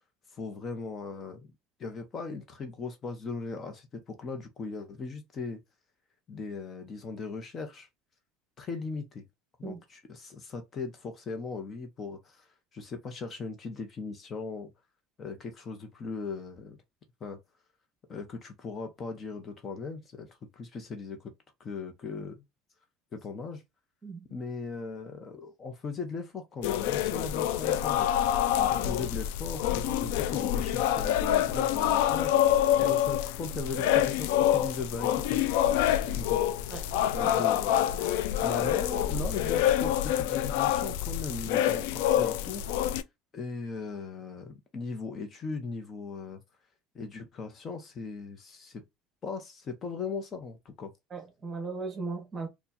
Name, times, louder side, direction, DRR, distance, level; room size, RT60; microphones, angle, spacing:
voice 1, 0.3-1.5 1.8-5.6 6.3-7.9 8.6-9.2 9.6-14.7 15.2-16.8 17.2-17.4 18.1-21.3 21.6-22.4 23.1-23.6 24.3-28.1 28.7-35.8 36.2-36.5 37.1-42.6 43.3-46.4 46.9-48.8 49.2-50.9, left 4 dB, 30° left, 0.9 m, -38 dB
sound 1, 26.6-43.0, left 11 dB, 85° left, 0.4 m, -26 dB
voice 2, 51.1-52.5, right 4 dB, 25° right, 1.2 m, -37 dB
4.3 x 2.4 x 2.6 m
cardioid pair, 130°, 0 cm